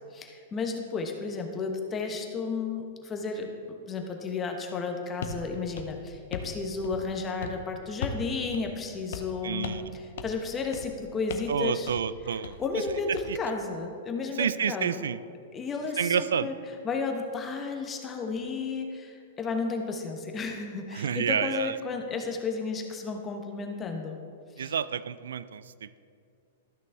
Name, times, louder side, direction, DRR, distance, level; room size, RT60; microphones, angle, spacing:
voice 1, 0.1-11.9 12.6-15.0 15.5-16.5 16.8-24.2 24.6-24.7, left 4 dB, 20° left, 3 dB, 1.0 m, -33 dB
sound 1, 5.2-5.4 5.8-6.6 6.8-7.1 7.4-7.6 8.0-8.3 8.5-8.6 9.1-9.4 9.6-9.9 10.2-10.4 10.7-11.0 11.3-11.6 11.9-12.1 12.4-13.3, left 6 dB, 65° left, 0.7 m, -38 dB
voice 2, 9.4-10.0 11.5-12.6 13.1-13.4 14.3-15.2 16.0-16.5 20.9-21.8 24.6-26.0, right 7 dB, 80° right, 16 dB, 0.3 m, -29 dB
13.0 x 6.0 x 3.5 m, 2.3 s
hypercardioid pair, 125°, 0 cm